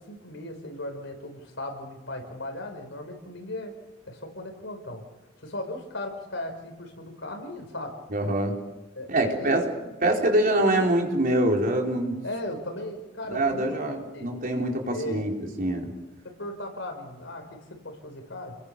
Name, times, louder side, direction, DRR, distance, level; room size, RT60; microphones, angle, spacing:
voice 1, 0.0-3.8 4.1-5.0 5.4-7.9 9.0-9.9 12.2-13.9 14.1-14.3 14.8-15.4 16.2-18.6, left 1 dB, 70° left, 4 dB, 5.6 m, -37 dB
voice 2, 8.1-8.5 9.1-9.7 10.0-12.1 13.3-15.9, right 1 dB, 45° right, 1 dB, 4.3 m, -24 dB
30.0 x 21.5 x 7.0 m, 1.0 s
head